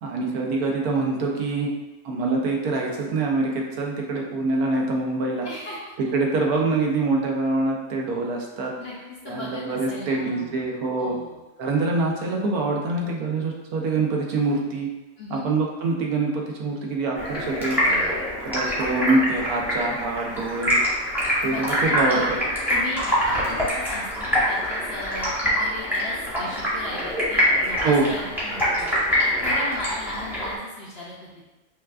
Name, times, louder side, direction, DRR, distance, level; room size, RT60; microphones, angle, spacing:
voice 1, 0.0-1.7 2.0-5.5 6.1-8.7 9.3-11.2 11.6-14.9 15.3-17.8 18.4-20.8 21.4-22.2 27.8-28.2, right 3 dB, 85° right, 0 dB, 1.2 m, -25 dB
voice 2, 5.4-5.8 8.8-10.7 11.0-11.4 15.2-15.5 17.8-18.2 21.4-22.3 22.7-28.9 29.2-31.5, left 2 dB, 60° left, -5 dB, 0.7 m, -37 dB
Stream, 17.1-30.6, equal, ahead, 0.8 m, -24 dB
5.6 x 2.4 x 2.3 m, 1.1 s
omnidirectional pair, 1.5 m